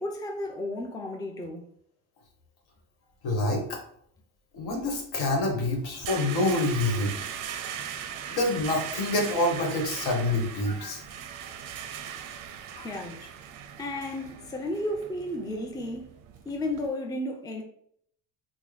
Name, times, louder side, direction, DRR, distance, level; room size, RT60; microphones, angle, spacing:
voice 1, 0.0-1.6 11.4-11.5 12.1-12.3 12.8-13.2 13.8-16.1 16.5-17.6, left 1 dB, 10° left, 0.5 m, -33 dB
voice 2, 3.2-3.8 4.5-7.2 8.3-11.0 12.8-12.9, left 2 dB, 60° left, 1.1 m, -27 dB
sound 1, 5.3-16.9, right 9 dB, 50° right, 0.5 m, -39 dB
3.0 x 2.0 x 3.8 m
hypercardioid pair, 65°, 42 cm